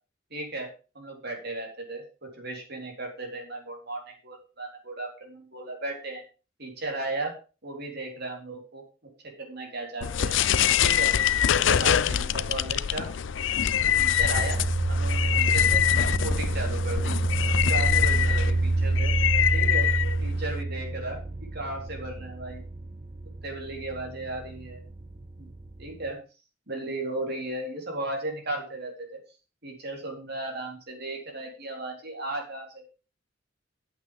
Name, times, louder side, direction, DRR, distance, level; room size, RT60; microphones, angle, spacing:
voice 1, 0.3-6.2 6.6-7.4 7.6-8.8 9.4-10.3 10.8-11.2 11.5-13.1 13.8-14.6 14.9-15.8 16.2-17.2 17.6-19.1 19.5-19.9 20.2-22.6 23.4-24.8 25.4-25.5 25.8-26.2 26.7-29.2 29.6-32.9, right 2 dB, 55° right, 1 dB, 3.9 m, -35 dB
sound 1, 10.0-20.6, left 9 dB, 65° left, 0.5 m, -25 dB
Ride cymbal with reverb, 13.3-26.1, right 2 dB, 40° right, 1.1 m, -28 dB
9.0 x 8.1 x 5.3 m, 0.34 s
head